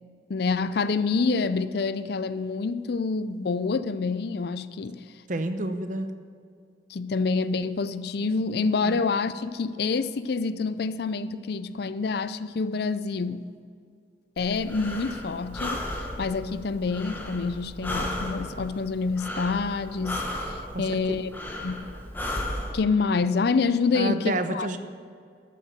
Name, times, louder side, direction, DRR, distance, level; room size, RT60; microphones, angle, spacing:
voice 1, 0.3-5.0 6.9-13.4 14.4-21.3 21.6-21.8 22.7-24.7, left 4 dB, 55° left, 0.5 m, -27 dB
voice 2, 5.3-6.1 8.8-9.0 20.7-21.0 23.9-24.8, right 2 dB, 45° right, 0.8 m, -29 dB
Breathing, 14.4-22.7, left 1 dB, 10° left, 1.3 m, -35 dB
13.0 x 7.7 x 6.5 m
head